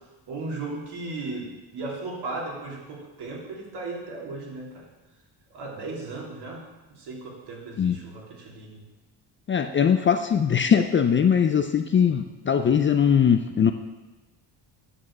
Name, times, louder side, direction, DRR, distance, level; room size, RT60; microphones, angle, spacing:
voice 1, 0.3-4.9 5.5-6.6 6.9-8.8, right 3 dB, 65° right, -2 dB, 3.3 m, -36 dB
voice 2, 9.5-13.7, left 7 dB, 30° left, 6 dB, 0.5 m, -21 dB
8.7 x 7.0 x 7.3 m, 1.1 s
cardioid pair, 125°, 43 cm